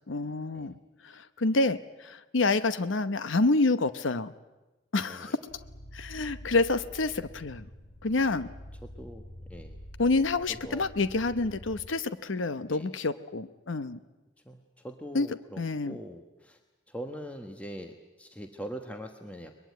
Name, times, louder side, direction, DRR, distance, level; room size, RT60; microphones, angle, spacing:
voice 1, 0.1-0.8 1.0-4.3 4.9-5.4 5.9-7.7 8.0-8.5 10.0-14.0 15.1-15.3 15.6-16.0, left 3 dB, 85° left, 13 dB, 0.9 m, -28 dB
voice 2, 5.1-5.4 9.0-9.2 9.5-9.8 10.5-10.8 12.7-12.9 14.4-16.6 16.9-19.5, equal, 5° left, 4 dB, 1.2 m, -42 dB
sound 1, 5.5-11.9, equal, 65° left, 2.1 m, -47 dB
22.5 x 21.5 x 9.3 m, 1.1 s
head